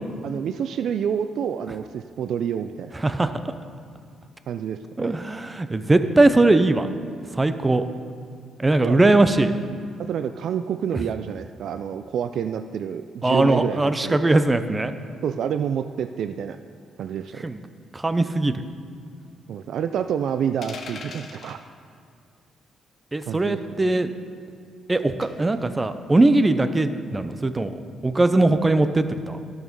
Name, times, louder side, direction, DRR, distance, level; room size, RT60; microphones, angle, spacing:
voice 1, 0.2-2.9 4.5-5.1 8.8-9.1 10.1-14.2 15.2-16.6 17.0-17.5 19.5-21.6 23.3-23.6, right 8 dB, 70° right, 9 dB, 0.3 m, -28 dB
voice 2, 5.0-6.9 7.3-7.8 8.6-9.5 13.2-14.9 17.4-17.6 17.9-18.5 23.1-24.1 24.9-27.7 28.0-29.4, right 2 dB, 20° right, 10 dB, 0.6 m, -20 dB
sound 1, 20.6-21.6 23.2-23.5 25.2-25.5, left 4 dB, 55° left, 1.0 m, -39 dB
12.0 x 6.4 x 5.2 m, 2.4 s
cardioid pair, 90°, 0 cm